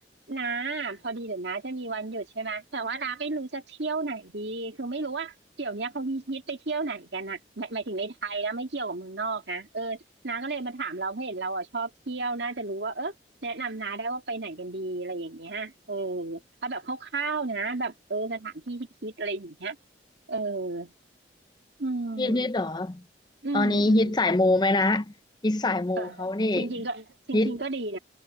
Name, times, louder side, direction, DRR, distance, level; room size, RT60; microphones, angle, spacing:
voice 1, 0.3-10.0 10.2-13.1 13.4-19.8 20.3-20.9 21.8-22.5 23.4-24.1 26.0-26.2 26.6-28.0, right 3 dB, 75° right, 2.1 m, -32 dB
voice 2, 22.2-23.0 23.5-25.1 25.4-26.7 27.3-27.6, left 2 dB, 25° left, 0.5 m, -24 dB
head